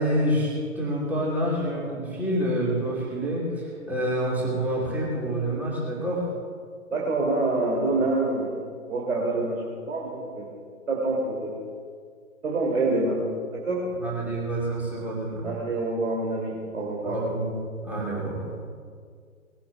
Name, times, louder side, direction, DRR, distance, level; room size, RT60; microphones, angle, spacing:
voice 1, 0.0-6.3 13.9-15.5 17.0-17.5 17.8-18.5, right 1 dB, 5° right, -6 dB, 2.8 m, -27 dB
voice 2, 6.9-8.6 8.9-10.5 10.9-11.5 12.4-13.2 13.5-13.8 15.4-17.2, right 2 dB, 65° right, -3 dB, 3.0 m, -26 dB
21.5 x 17.5 x 2.4 m, 2.1 s
figure-of-eight pair, 125°, 42 cm